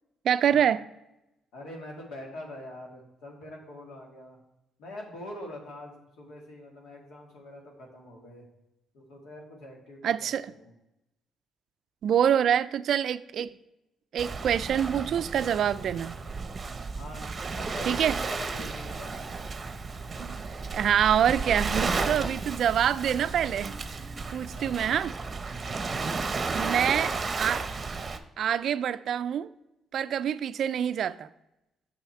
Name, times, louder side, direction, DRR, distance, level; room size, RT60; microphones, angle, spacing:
voice 1, 0.2-0.8 10.0-10.5 12.0-13.5 14.1-16.1 17.9-18.2 20.2-20.4 20.7-23.8 24.3-25.2 26.5-27.7 28.4-29.5 29.9-31.3, right 9 dB, 65° right, 0.3 m, -26 dB
voice 2, 1.5-4.4 4.8-8.5 8.9-10.7 17.0-19.3 24.5-24.8 25.6-26.3, left 1 dB, 75° left, 2.1 m, -44 dB
Waves surf, 14.2-28.2, right 4 dB, 35° right, 0.7 m, -33 dB
6.9 x 5.7 x 4.4 m
supercardioid pair, 65°, 0 cm